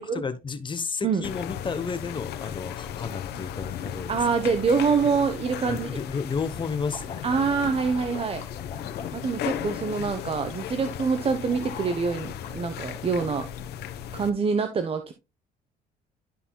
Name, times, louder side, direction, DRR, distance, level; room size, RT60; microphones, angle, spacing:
voice 1, 0.0-4.2 5.7-7.5, left 5 dB, 30° left, 1.0 m, -32 dB
sound 1, 1.2-14.3, left 10 dB, 75° left, 1.0 m, -36 dB
voice 2, 4.1-5.9 7.2-8.4 9.1-13.5 14.1-15.1, right 5 dB, 35° right, 1.0 m, -25 dB
Water / Liquid, 6.8-13.6, left 6 dB, 45° left, 2.4 m, -44 dB
12.0 x 5.5 x 2.3 m
cardioid pair, 110°, 17 cm